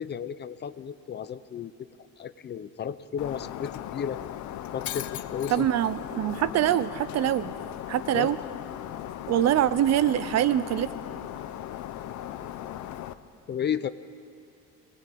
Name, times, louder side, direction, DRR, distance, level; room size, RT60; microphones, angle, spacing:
voice 1, 0.0-1.7 2.2-4.2 4.7-5.7 8.1-8.3 13.5-13.9, left 8 dB, 35° left, 14 dB, 0.6 m, -33 dB
Shatter, 3.2-13.1, left 12 dB, 65° left, 0.8 m, -37 dB
voice 2, 5.5-7.5 7.9-8.4 9.3-10.9, right 11 dB, 55° right, 15 dB, 0.7 m, -24 dB
22.0 x 19.5 x 8.6 m, 2.5 s
cardioid pair, 155°, 31 cm